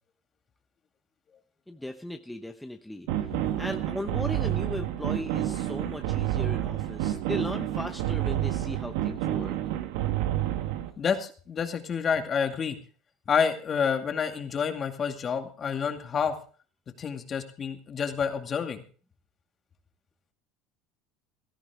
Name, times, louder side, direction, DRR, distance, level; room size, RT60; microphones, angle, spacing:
voice 1, 1.7-3.1 3.6-9.6, left 1 dB, 5° left, 6 dB, 0.9 m, -37 dB
sound 1, 3.1-10.9, right 13 dB, 80° right, 1.5 m, -29 dB
voice 2, 11.0-12.8 13.3-16.3 17.0-18.8, left 6 dB, 35° left, 5 dB, 2.3 m, -28 dB
17.0 x 13.5 x 3.6 m, 0.40 s
supercardioid pair, 100°, 0 cm